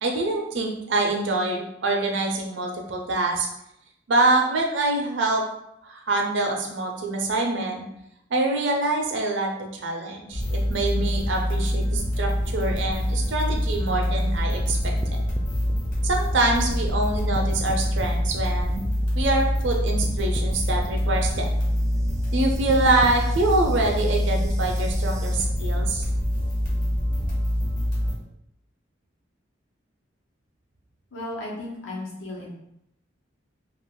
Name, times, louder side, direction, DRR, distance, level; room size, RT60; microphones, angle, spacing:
voice 1, 0.0-3.5 4.1-5.4 5.8-7.8 8.3-15.2 16.0-18.8 19.1-21.5 22.3-26.0, right 2 dB, 70° right, 1 dB, 0.6 m, -25 dB
sound 1, 10.3-28.1, equal, 45° left, 0.8 m, -25 dB
sound 2, 14.7-17.0 17.3-19.7 20.0-25.4, right 1 dB, 15° right, 0.3 m, -39 dB
voice 2, 31.1-32.5, left 1 dB, 85° left, -3 dB, 1.0 m, -34 dB
2.5 x 2.4 x 3.6 m, 0.79 s
head